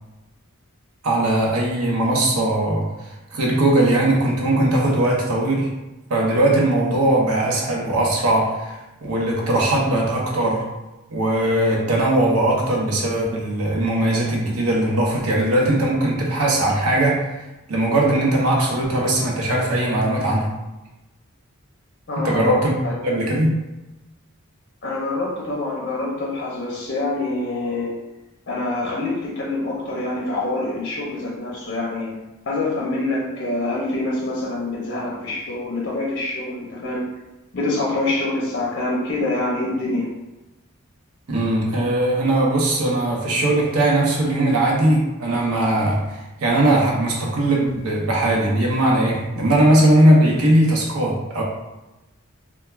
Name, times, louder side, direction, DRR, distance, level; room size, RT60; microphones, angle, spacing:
voice 1, 1.0-5.7 6.1-10.6 11.1-17.4 17.7-20.5 22.2-22.8 23.0-23.6 41.3-51.4, right 1 dB, 90° right, -2 dB, 0.7 m, -19 dB
voice 2, 22.1-22.5 22.8-22.9 24.8-28.0 28.5-32.2 32.5-37.1 37.5-40.1, left 2 dB, 50° left, -4 dB, 0.5 m, -25 dB
2.3 x 2.2 x 3.1 m, 1.0 s
head